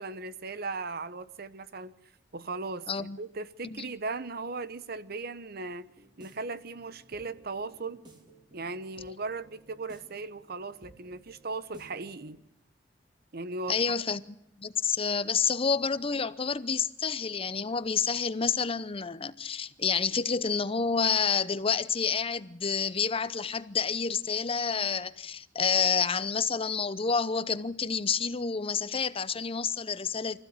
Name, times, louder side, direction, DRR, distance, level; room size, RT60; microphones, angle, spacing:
voice 1, 0.0-1.9 2.3-5.9 6.2-8.0 8.5-12.4 13.3-13.8, right 3 dB, 55° right, 1.1 m, -37 dB
voice 2, 2.9-3.2 3.6-3.9 13.7-14.2 14.6-30.4, left 6 dB, 30° left, 0.8 m, -29 dB
sound 1, 5.9-12.4, right 2 dB, 25° right, 4.0 m, -56 dB
25.0 x 15.5 x 8.9 m
head